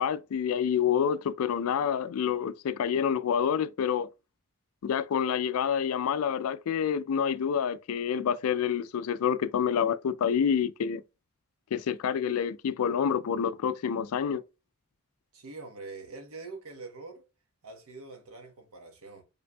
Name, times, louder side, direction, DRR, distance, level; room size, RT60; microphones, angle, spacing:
voice 1, 0.0-4.1 4.8-11.0 11.7-14.4, left 7 dB, 75° left, 0.3 m, -28 dB
voice 2, 15.3-17.2 17.6-19.2, right 3 dB, 75° right, 1.1 m, -44 dB
5.2 x 3.3 x 2.2 m
head